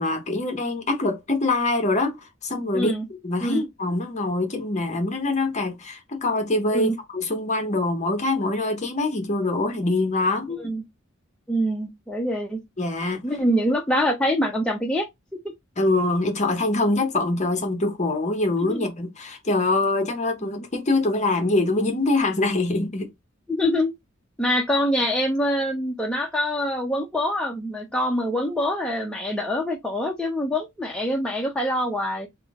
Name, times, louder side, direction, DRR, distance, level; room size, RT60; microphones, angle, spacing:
voice 1, 0.0-2.9 3.2-10.7 12.8-13.2 15.8-23.1, left 2 dB, 35° left, 0.7 m, -24 dB
voice 2, 2.7-3.0 3.4-3.6 6.7-7.0 10.6-10.8 11.5-12.6 13.2-15.1 15.4-15.5 18.6-18.8 23.5-23.9 24.4-32.3, equal, 5° left, 0.5 m, -25 dB
3.6 x 2.1 x 3.5 m
head